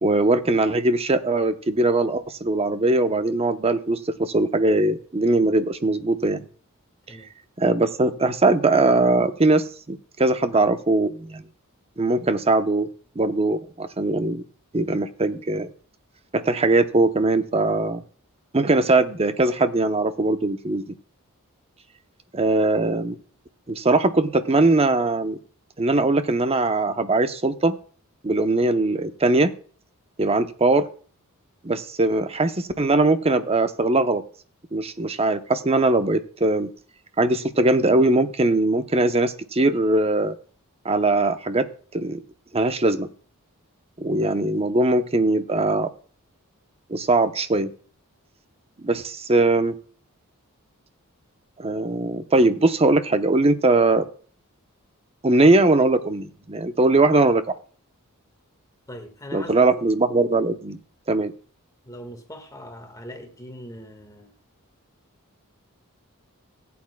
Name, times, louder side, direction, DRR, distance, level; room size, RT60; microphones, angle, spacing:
voice 1, 0.0-6.4 7.1-7.2 7.6-11.5 12.0-12.9 13.2-14.4 14.7-15.7 16.3-18.0 18.5-21.0 22.3-23.2 23.7-25.4 25.8-27.8 28.2-29.5 30.2-30.9 31.6-34.2 34.7-36.7 37.2-40.3 40.8-41.7 41.9-42.2 42.5-43.1 44.0-45.9 46.9-47.7 48.8-49.7 51.6-54.0 55.2-57.4 59.3-60.8 61.1-61.3, right 2 dB, 25° right, 0.8 m, -21 dB
voice 2, 58.9-59.9 61.8-64.3, equal, 15° left, 1.6 m, -40 dB
16.0 x 8.6 x 2.2 m
head